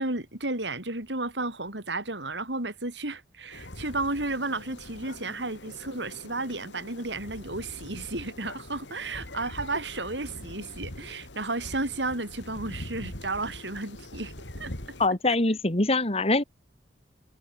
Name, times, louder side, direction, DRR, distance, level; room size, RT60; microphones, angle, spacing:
voice 1, 0.0-14.7 15.3-15.4, right 2 dB, 75° right, 6.6 m, -33 dB
sound 1, 3.5-15.1, left 1 dB, 80° left, 4.8 m, -43 dB
voice 2, 15.0-16.4, left 2 dB, 35° left, 2.6 m, -23 dB
head